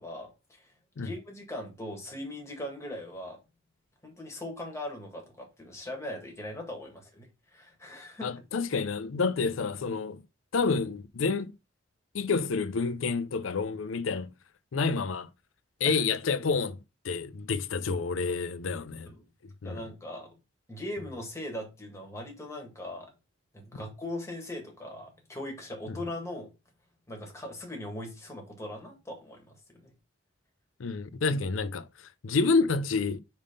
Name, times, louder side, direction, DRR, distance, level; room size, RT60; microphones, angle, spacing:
voice 1, 0.0-3.4 4.0-8.3 15.8-16.0 19.1-19.2 19.6-20.4 20.7-23.1 23.5-26.5 27.1-29.9, left 1 dB, 15° left, 1.7 m, -40 dB
voice 2, 8.2-10.2 10.5-11.5 12.1-14.3 14.7-15.3 15.8-16.8 17.0-19.1 19.6-19.8 25.9-26.0 30.8-31.9 32.2-33.2, left 4 dB, 80° left, 0.5 m, -28 dB
5.3 x 3.6 x 5.1 m
head